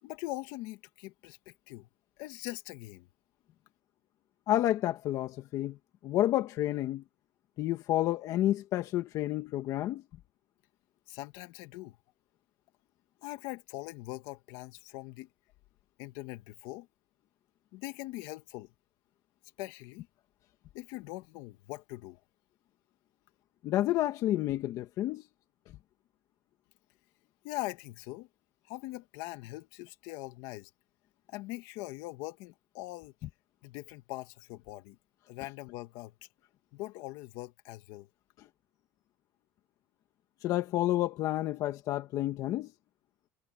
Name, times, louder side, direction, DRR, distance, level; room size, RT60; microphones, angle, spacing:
voice 1, 0.0-1.9 2.2-3.1 11.1-12.0 13.2-15.3 16.0-16.9 17.7-18.7 19.6-20.1 20.7-22.2 27.4-28.3 28.7-30.7 31.3-33.1 33.6-35.0 35.3-36.1 36.7-38.1, left 19 dB, 80° left, 2.1 m, -42 dB
voice 2, 4.5-5.8 6.0-7.0 7.6-10.0 23.6-25.2 40.4-42.7, left 14 dB, 55° left, 1.5 m, -30 dB
cardioid pair, 135°, 7 cm